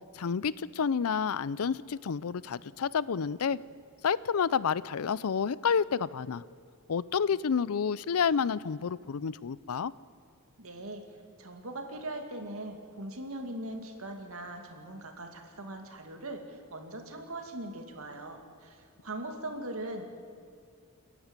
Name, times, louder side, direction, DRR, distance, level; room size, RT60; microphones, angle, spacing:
voice 1, 0.1-3.6 4.0-6.4 6.9-9.9, left 6 dB, 75° left, 20 dB, 0.5 m, -29 dB
voice 2, 10.6-11.0 11.4-16.4 16.7-18.8 19.0-20.1, right 1 dB, 70° right, 5 dB, 2.4 m, -40 dB
29.0 x 11.0 x 8.9 m, 2.3 s
head